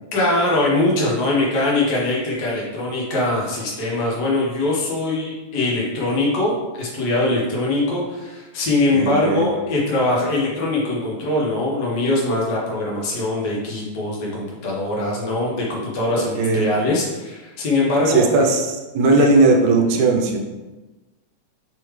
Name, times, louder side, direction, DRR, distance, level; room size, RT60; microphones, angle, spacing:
voice 1, 0.1-18.3 19.2-19.3, left 2 dB, 85° left, -4 dB, 0.9 m, -22 dB
voice 2, 8.9-9.5 16.4-16.7 18.1-20.4, right 3 dB, 80° right, 2 dB, 1.9 m, -17 dB
5.4 x 3.2 x 3.1 m, 1.2 s
omnidirectional pair, 3.3 m